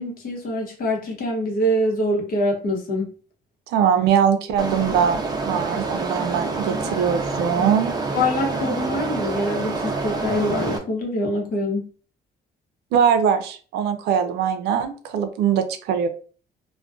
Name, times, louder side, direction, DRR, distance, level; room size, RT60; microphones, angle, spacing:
voice 1, 0.0-3.1 8.1-11.9, left 1 dB, 60° left, -1 dB, 0.8 m, -24 dB
voice 2, 3.7-5.2 5.4-7.9 12.9-16.1, right 8 dB, 80° right, 8 dB, 0.4 m, -21 dB
sound 1, 4.6-10.8, right 3 dB, 25° right, 0.4 m, -27 dB
2.4 x 2.1 x 2.4 m, 0.40 s
cardioid pair, 110°, 17 cm